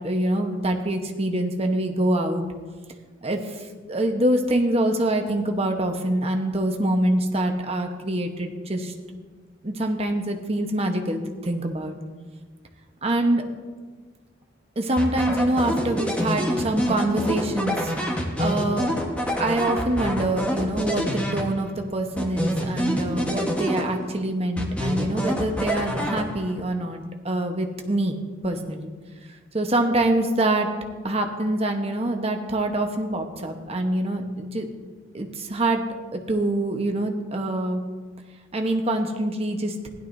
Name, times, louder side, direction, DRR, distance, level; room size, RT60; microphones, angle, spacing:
voice 1, 0.0-2.4 3.2-8.9 9.6-11.9 13.0-13.5 14.8-17.9 18.4-18.9 19.4-28.9 29.5-30.7 31.0-34.7 35.1-37.8 38.5-39.9, right 1 dB, 35° right, 4 dB, 1.0 m, -25 dB
sound 1, 15.0-21.8 22.2-24.2 24.6-26.6, equal, 5° left, 1.2 m, -27 dB
16.0 x 11.5 x 2.7 m, 1.4 s
head